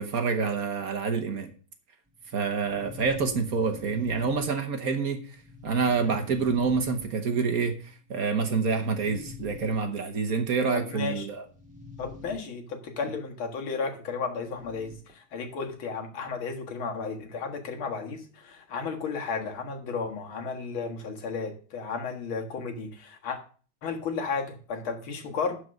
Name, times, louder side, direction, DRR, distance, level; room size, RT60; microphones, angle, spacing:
voice 1, 0.0-1.5 2.3-5.2 5.6-11.4, right 5 dB, 50° right, 1.4 m, -27 dB
sound 1, 2.1-4.9 5.3-7.5 8.3-10.1 11.4-12.3 12.7-12.8 14.4-15.1, left 4 dB, 5° right, 1.9 m, -45 dB
voice 2, 10.7-11.3 12.0-23.4 23.8-25.6, left 5 dB, 90° left, 2.5 m, -33 dB
11.5 x 4.9 x 6.4 m
omnidirectional pair, 2.2 m